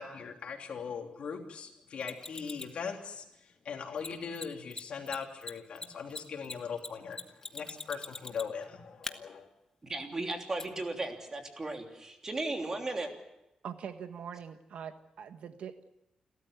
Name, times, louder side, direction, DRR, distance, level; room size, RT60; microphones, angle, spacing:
voice 1, 0.0-3.2 3.6-7.2 7.5-9.5, left 6 dB, 70° left, 3 dB, 3.2 m, -40 dB
Mechanisms, 2.0-2.8 4.0-4.1 4.3-4.4 4.7-4.8 5.1-8.6 9.0-9.1 10.6-10.7, left 3 dB, 25° left, 1.2 m, -41 dB
voice 2, 9.8-13.1, right 2 dB, 25° right, 3 dB, 3.2 m, -36 dB
voice 3, 13.6-15.9, right 7 dB, 85° right, 9 dB, 1.4 m, -43 dB
29.0 x 13.0 x 8.2 m, 0.89 s
wide cardioid pair, 135°, 2 cm